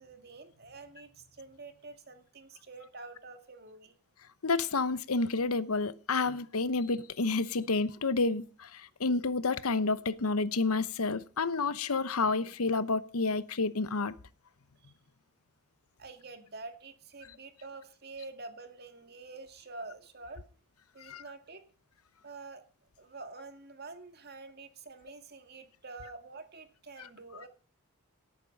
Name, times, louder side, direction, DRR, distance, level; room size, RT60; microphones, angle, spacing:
voice 1, 0.0-3.9 16.0-20.5 20.9-21.6 22.2-22.6 23.0-27.5, right 3 dB, 45° right, 2.1 m, -47 dB
voice 2, 4.4-14.1 21.1-21.2, left 3 dB, 85° left, 0.9 m, -30 dB
18.0 x 8.8 x 5.4 m
head